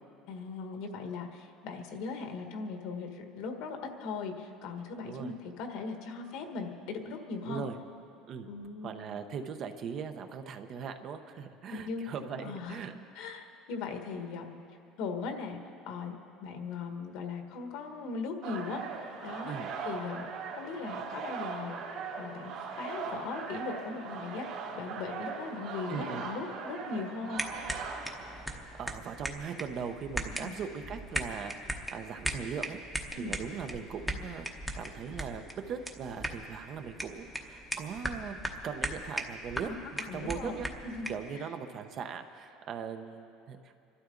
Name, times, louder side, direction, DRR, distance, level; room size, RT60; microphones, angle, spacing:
voice 1, 0.3-7.6 8.5-9.2 11.7-12.0 12.4-12.8 13.1-14.6 15.0-15.6 15.8-16.1 16.4-18.8 19.2-19.5 19.8-20.3 20.5-21.8 22.2-24.5 24.7-27.4 30.3-30.6 33.1-33.3 39.7-41.5, left 4 dB, 65° left, 4 dB, 1.6 m, -39 dB
voice 2, 7.4-7.8 8.3-8.5 8.8-13.0 19.4-19.7 25.9-26.2 28.5-32.8 33.1-40.7 41.1-43.7, right 6 dB, 40° right, 7 dB, 0.8 m, -40 dB
sound 1, 18.4-28.9, right 5 dB, 55° right, 2.4 m, -40 dB
sound 2, 27.3-41.3, equal, ahead, 0.9 m, -39 dB
26.0 x 12.5 x 3.9 m, 2.6 s
cardioid pair, 160°, 0 cm